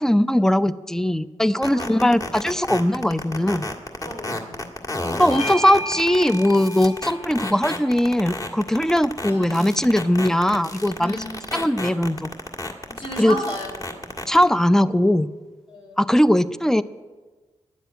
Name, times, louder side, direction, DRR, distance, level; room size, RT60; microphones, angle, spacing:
voice 1, 0.0-3.7 5.2-11.2 11.5-12.3 13.2-13.4 14.3-15.3 16.0-16.8, left 1 dB, 5° left, 14 dB, 0.5 m, -20 dB
sound 1, 1.6-14.4, left 2 dB, 30° left, 1.7 m, -30 dB
voice 2, 1.7-2.1 4.0-4.6 9.3-9.8 11.0-11.4 12.9-14.1 15.7-16.0, equal, 50° left, 0 dB, 4.0 m, -34 dB
Bell / Doorbell, 5.3-10.1, equal, 75° left, 2.3 m, -36 dB
10.5 x 7.5 x 9.2 m, 1.3 s
cardioid pair, 55°, 12 cm